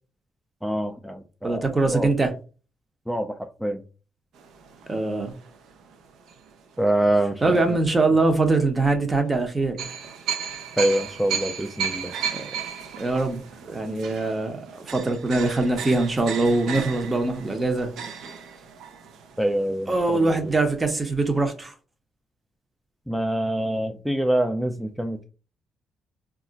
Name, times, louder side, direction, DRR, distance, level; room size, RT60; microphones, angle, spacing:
voice 1, 0.6-2.1 3.1-3.8 6.8-7.8 10.8-12.2 19.4-20.5 23.1-25.2, right 1 dB, ahead, 4 dB, 0.3 m, -25 dB
voice 2, 1.4-2.3 4.9-5.3 7.4-9.9 12.3-12.4 13.0-17.9 19.9-21.7, right 2 dB, 25° right, 6 dB, 0.7 m, -23 dB
sound 1, 4.4-6.8 7.4-7.6 9.8-20.5 20.8-20.9 21.2-21.4, right 7 dB, 80° right, 0.5 m, -35 dB
2.4 x 2.0 x 3.9 m, 0.35 s
cardioid pair, 90°, 0 cm